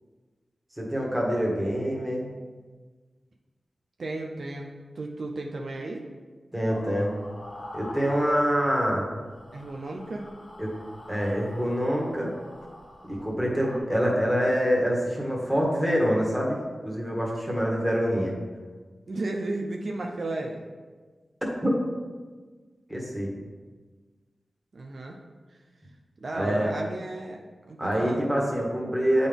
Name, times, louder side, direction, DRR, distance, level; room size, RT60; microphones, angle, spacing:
voice 1, 0.8-2.3 6.5-7.2 7.7-9.1 10.6-10.8 11.1-12.3 13.1-18.3 21.6-21.8 22.9-23.3 26.3-26.7 27.8-29.3, equal, 10° right, -3 dB, 1.6 m, -25 dB
voice 2, 4.0-6.0 9.5-10.3 19.1-20.6 24.7-25.2 25.5-25.6 26.2-27.4 27.7-28.2, right 2 dB, 65° right, 1 dB, 0.5 m, -34 dB
sound 1, 6.7-9.0 9.2-13.8, left 1 dB, 60° left, 1.4 m, -44 dB
8.0 x 3.8 x 3.5 m, 1.4 s
cardioid pair, 60°, 0 cm